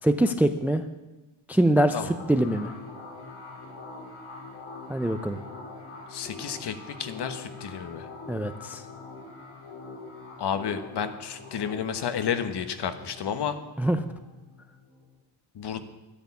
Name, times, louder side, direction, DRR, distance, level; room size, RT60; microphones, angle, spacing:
voice 1, 0.0-0.8 1.5-2.7 4.9-5.4 8.3-8.8 13.8-14.0, right 1 dB, 5° right, 9 dB, 0.4 m, -24 dB
sound 1, 2.0-15.2, left 3 dB, 85° left, 5.2 m, -44 dB
voice 2, 6.1-8.1 10.4-13.6 15.5-15.8, left 8 dB, 55° left, 10 dB, 1.3 m, -31 dB
12.5 x 10.5 x 8.3 m, 1.1 s
wide cardioid pair, 165°, 49 cm